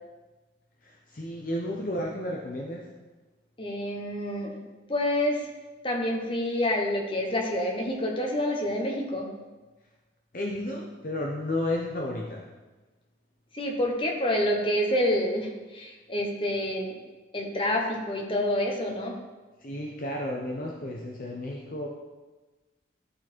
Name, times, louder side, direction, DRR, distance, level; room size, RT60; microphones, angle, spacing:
voice 1, 0.8-2.9 10.3-12.4 19.6-21.9, left 1 dB, 45° left, -1 dB, 0.8 m, -32 dB
voice 2, 3.6-4.6 4.9-5.5 5.8-9.3 13.5-17.0 17.3-19.2, left 1 dB, 30° left, 0 dB, 1.1 m, -28 dB
12.5 x 4.2 x 4.5 m, 1.2 s
head